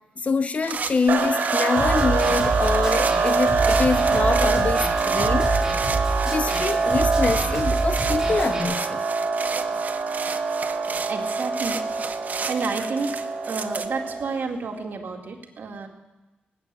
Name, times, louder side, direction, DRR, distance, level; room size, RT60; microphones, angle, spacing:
voice 1, 0.2-5.7 6.2-9.0, left 4 dB, 40° left, 12 dB, 0.6 m, -25 dB
sound 1, 0.6-13.9, right 5 dB, 55° right, 0.9 m, -33 dB
sound 2, 1.1-14.5, right 4 dB, 90° right, 2.0 m, -25 dB
Snare drum, 1.8-8.6, right 3 dB, 20° right, 3.4 m, -27 dB
voice 2, 11.1-11.8 12.5-13.2 13.5-15.9, right 4 dB, 70° right, 2 dB, 2.2 m, -30 dB
18.5 x 8.8 x 7.8 m, 1.1 s
wide cardioid pair, 100°, 3 cm